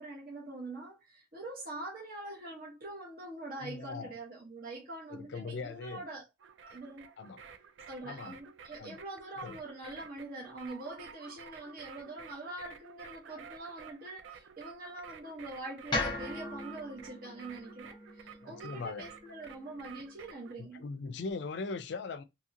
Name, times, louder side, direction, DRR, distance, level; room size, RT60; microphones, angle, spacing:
voice 1, 0.0-6.2 6.7-7.1 7.9-20.8, right 2 dB, 50° right, 0.9 m, -44 dB
voice 2, 3.6-4.1 5.1-6.0 7.2-7.4 8.0-8.4 8.8-9.0 9.4-9.6 18.4-19.1 20.6-22.2, left 4 dB, 60° left, 0.4 m, -40 dB
sound 1, 6.4-20.5, right 7 dB, 75° right, 0.4 m, -52 dB
sound 2, 15.9-20.1, left 2 dB, 25° left, 0.7 m, -39 dB
2.8 x 2.8 x 2.5 m
head